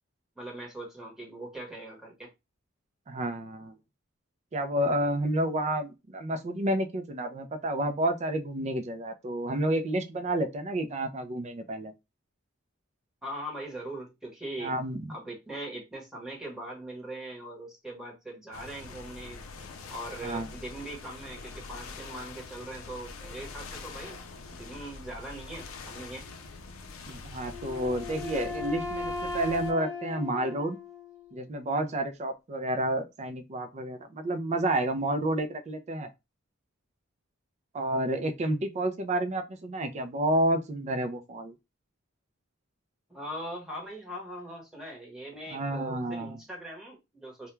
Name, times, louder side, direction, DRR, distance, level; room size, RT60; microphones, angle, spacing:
voice 1, 0.4-2.3 13.2-14.7 15.1-19.4 19.9-24.2 24.5-26.3 43.1-47.5, right 1 dB, 5° right, 1.0 m, -41 dB
voice 2, 3.1-3.8 4.5-11.9 14.6-15.1 20.2-20.5 27.1-30.8 31.3-36.1 37.7-41.5 45.5-46.4, right 1 dB, 35° right, 0.4 m, -30 dB
sound 1, 18.5-29.7, left 4 dB, 85° left, 0.5 m, -44 dB
Wind instrument woodwind instrument, 27.5-31.4, left 3 dB, 15° left, 0.6 m, -37 dB
2.2 x 2.2 x 3.0 m
head